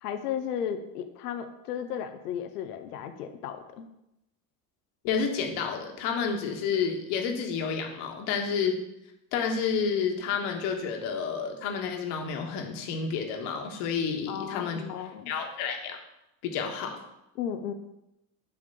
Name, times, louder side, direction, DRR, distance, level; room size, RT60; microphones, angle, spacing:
voice 1, 0.0-3.9 14.3-15.3 17.4-17.7, left 8 dB, 85° left, 7 dB, 0.8 m, -34 dB
voice 2, 5.0-8.8 9.3-14.8 15.3-16.0 16.4-17.0, left 6 dB, 70° left, 3 dB, 1.6 m, -30 dB
9.3 x 3.6 x 6.7 m, 0.87 s
hypercardioid pair, 70°, 45 cm